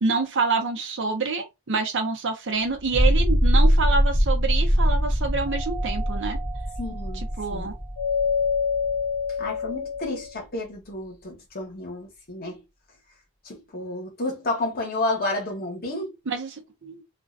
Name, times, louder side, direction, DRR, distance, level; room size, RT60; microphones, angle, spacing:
voice 1, 0.0-6.4 7.1-7.7 16.3-17.0, right 4 dB, 55° right, 0.6 m, -27 dB
sound 1, 2.8-9.3, equal, 10° left, 0.6 m, -22 dB
Doorbell, 5.5-10.3, left 6 dB, 60° left, 0.4 m, -29 dB
voice 2, 6.8-7.2 7.5-7.7 9.4-12.6 13.4-16.1, left 2 dB, 45° left, 1.0 m, -31 dB
2.4 x 2.2 x 2.5 m
head